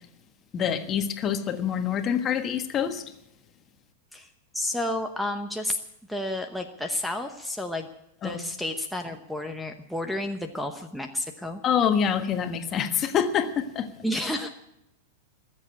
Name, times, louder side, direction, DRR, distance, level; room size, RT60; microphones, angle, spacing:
voice 1, 0.5-3.1 8.2-8.4 11.6-13.9, left 8 dB, 30° left, 7 dB, 1.4 m, -26 dB
voice 2, 4.1-5.8 6.1-7.9 8.2-11.6 14.0-14.5, left 1 dB, ahead, 7 dB, 1.0 m, -31 dB
20.5 x 7.6 x 8.8 m, 0.83 s
hypercardioid pair, 125°, 0 cm